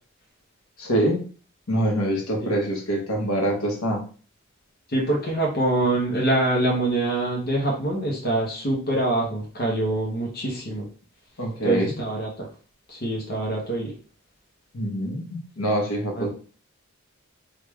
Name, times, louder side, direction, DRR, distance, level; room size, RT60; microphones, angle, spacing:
voice 1, 0.8-1.2 1.7-4.0 11.4-12.0 14.7-16.3, right 1 dB, 80° left, -1 dB, 1.0 m, -25 dB
voice 2, 4.9-10.9 11.6-12.5 12.9-13.9 16.2-16.3, right 2 dB, 45° left, -3 dB, 0.8 m, -25 dB
3.4 x 2.4 x 3.1 m, 0.40 s
head